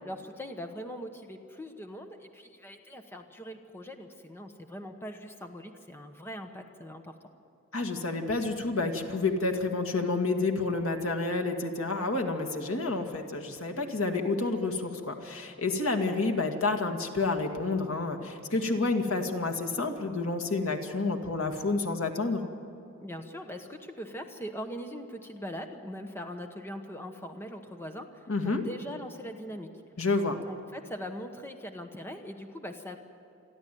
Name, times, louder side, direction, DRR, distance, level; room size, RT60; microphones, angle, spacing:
voice 1, 0.0-7.1 23.0-29.7 30.4-33.0, equal, 10° left, 5 dB, 1.1 m, -41 dB
voice 2, 7.7-22.4 28.3-28.6 30.0-30.4, left 3 dB, 90° left, 5 dB, 2.0 m, -29 dB
27.5 x 11.5 x 9.3 m, 2.6 s
head